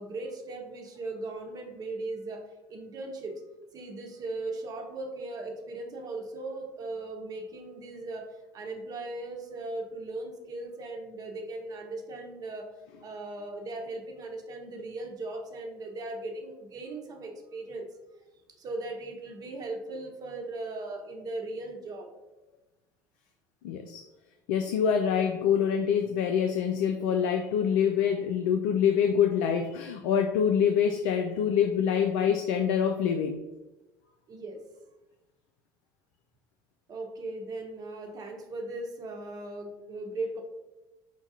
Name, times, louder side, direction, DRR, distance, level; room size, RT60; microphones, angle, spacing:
voice 1, 0.0-3.3 3.7-12.7 13.0-17.9 18.6-22.1 25.0-25.2 34.3-34.6 36.9-40.4, right 2 dB, 40° right, 3 dB, 0.8 m, -38 dB
voice 2, 23.6-24.0 24.5-33.4, left 8 dB, 65° left, 6 dB, 0.4 m, -25 dB
4.6 x 2.3 x 4.1 m, 1.1 s
hypercardioid pair, 70°, 10 cm